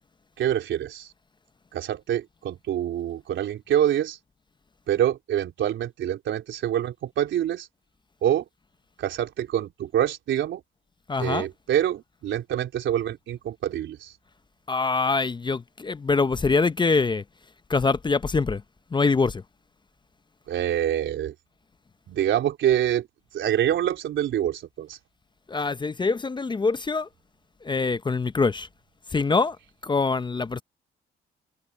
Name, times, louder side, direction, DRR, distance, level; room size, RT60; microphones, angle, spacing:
voice 1, 0.4-1.1 1.7-4.2 4.9-7.7 8.2-8.5 9.0-10.6 11.2-14.1 20.5-21.3 22.1-23.1 23.3-25.0, right 11 dB, 75° right, 3.8 m, -26 dB
voice 2, 11.1-11.5 14.7-17.2 17.7-18.6 18.9-19.4 25.5-27.1 27.6-28.7 29.1-29.6 29.8-30.6, left 4 dB, 25° left, 0.6 m, -24 dB
cardioid pair, 90°, 20 cm